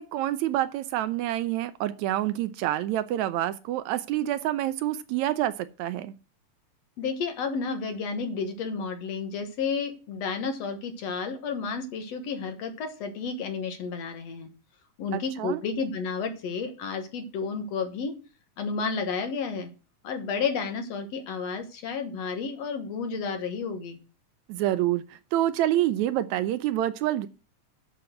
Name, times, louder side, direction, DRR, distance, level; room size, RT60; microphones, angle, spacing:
voice 1, 0.0-6.1 15.1-15.6 24.5-27.3, right 13 dB, 80° right, 1.8 m, -27 dB
voice 2, 7.0-14.5 15.0-18.1 18.6-19.7 20.0-24.0, left 5 dB, 65° left, 2.3 m, -31 dB
7.0 x 6.3 x 7.7 m
omnidirectional pair, 3.4 m